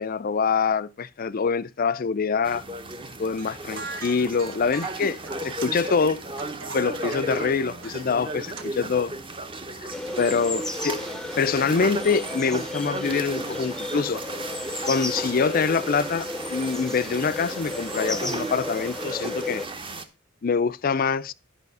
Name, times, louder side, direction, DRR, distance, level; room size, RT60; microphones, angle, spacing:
voice 1, 0.0-2.6 3.2-6.2 6.7-9.1 10.2-11.0 11.4-14.2 14.9-19.6 20.4-21.3, left 5 dB, 45° left, 0.4 m, -25 dB
sound 1, 2.4-20.0, right 2 dB, 25° right, 0.9 m, -35 dB
sound 2, 3.2-8.6, right 3 dB, 70° right, 1.4 m, -42 dB
sound 3, 9.9-19.7, left 2 dB, 5° left, 0.6 m, -34 dB
11.0 x 5.6 x 5.4 m
head